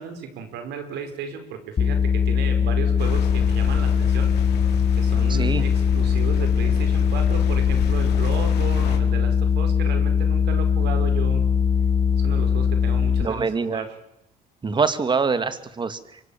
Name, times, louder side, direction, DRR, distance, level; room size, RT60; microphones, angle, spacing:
voice 1, 0.0-4.3 5.0-11.5 12.1-14.0, right 7 dB, 80° right, 7 dB, 5.6 m, -34 dB
sound 1, 1.8-13.2, left 7 dB, 35° left, 1.4 m, -20 dB
sound 2, 3.0-9.0, left 8 dB, 75° left, 4.5 m, -33 dB
voice 2, 5.3-5.6 13.2-13.8 14.6-16.2, right 5 dB, 25° right, 12 dB, 2.3 m, -24 dB
27.5 x 24.5 x 7.5 m, 0.84 s
cardioid pair, 110°, 17 cm